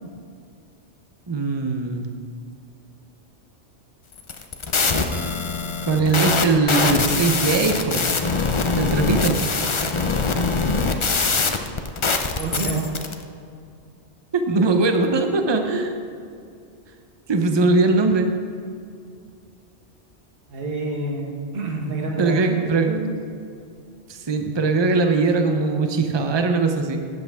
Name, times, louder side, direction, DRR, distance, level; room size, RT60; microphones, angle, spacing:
voice 1, 1.3-2.1 5.8-8.1 8.8-9.5 14.3-16.0 17.3-18.3 22.2-22.9 24.1-27.0, right 3 dB, 25° right, 5 dB, 0.7 m, -20 dB
sound 1, 4.2-13.1, left 4 dB, 35° left, 0.6 m, -23 dB
voice 2, 12.4-12.9 20.5-22.5 22.9-23.1, right 3 dB, 55° right, 0 dB, 1.5 m, -28 dB
13.0 x 9.2 x 3.6 m, 2.4 s
omnidirectional pair, 1.2 m